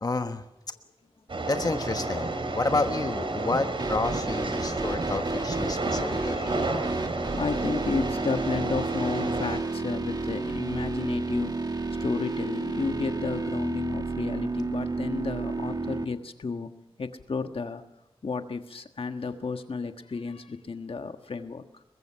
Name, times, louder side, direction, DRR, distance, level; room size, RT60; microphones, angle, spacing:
voice 1, 0.0-0.4 1.5-6.5, left 3 dB, 40° left, 7 dB, 1.2 m, -30 dB
sound 1, 1.3-9.6, right 2 dB, 60° right, 4.1 m, -31 dB
sound 2, 3.8-16.0, right 3 dB, 40° right, 1.8 m, -32 dB
voice 2, 5.6-6.7 7.2-11.5 12.0-16.7 17.0-17.8 18.2-21.8, left 4 dB, 65° left, 7 dB, 1.4 m, -32 dB
23.0 x 21.5 x 5.7 m, 0.92 s
wide cardioid pair, 95°, 10 cm